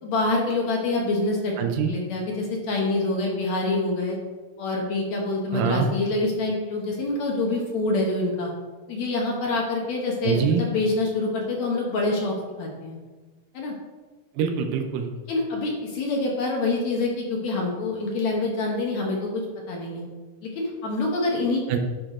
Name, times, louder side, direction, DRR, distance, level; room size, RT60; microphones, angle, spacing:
voice 1, 0.0-1.5 1.9-4.2 4.6-8.5 8.9-13.0 13.5-13.7 15.3-20.0 20.4-21.6, left 2 dB, 65° left, -1 dB, 2.1 m, -26 dB
voice 2, 1.6-1.9 5.5-5.9 10.2-10.6 14.4-15.1 21.7-21.8, right 6 dB, 90° right, 4 dB, 2.5 m, -24 dB
11.0 x 4.8 x 3.7 m, 1.3 s
omnidirectional pair, 3.9 m